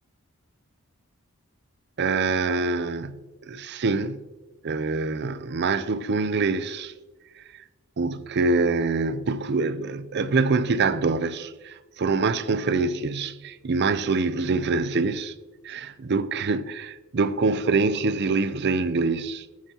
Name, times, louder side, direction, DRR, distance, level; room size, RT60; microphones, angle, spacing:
voice 1, 2.0-4.2 4.6-6.9 7.4-7.5 8.0-15.3 15.6-19.5, right 4 dB, 50° right, 0.5 m, -25 dB
14.5 x 9.0 x 2.9 m
head